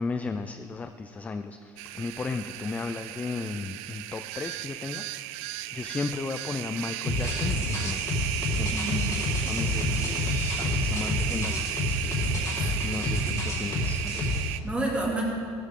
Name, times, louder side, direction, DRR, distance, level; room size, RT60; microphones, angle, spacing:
voice 1, 0.0-5.4 5.7-8.2 8.5-8.7 9.5-10.2 10.6-14.6, left 4 dB, 15° left, 8 dB, 0.3 m, -35 dB
sound 1, 1.8-14.6, right 16 dB, 75° right, 0.4 m, -34 dB
sound 2, 7.0-14.4, left 2 dB, 30° left, 3.8 m, -28 dB
voice 2, 8.7-9.1 9.4-10.3 12.6-13.3 14.6-15.2, right 2 dB, 10° right, -3 dB, 2.6 m, -33 dB
16.0 x 13.0 x 3.7 m, 2.3 s
cardioid pair, 155°, 11 cm